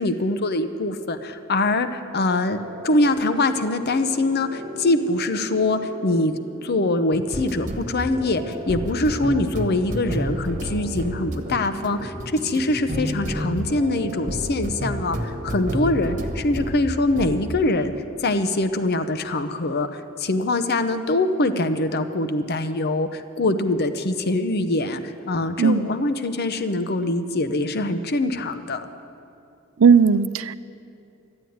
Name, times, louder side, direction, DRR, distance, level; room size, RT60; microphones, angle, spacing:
voice 1, 0.0-17.9 18.2-28.8, left 2 dB, 50° left, 10 dB, 0.8 m, -23 dB
sound 1, 2.5-16.8 17.1-17.4, equal, 35° right, 1.4 m, -32 dB
voice 2, 29.8-30.5, right 6 dB, 75° right, 15 dB, 0.5 m, -16 dB
13.0 x 11.0 x 9.4 m, 2.6 s
head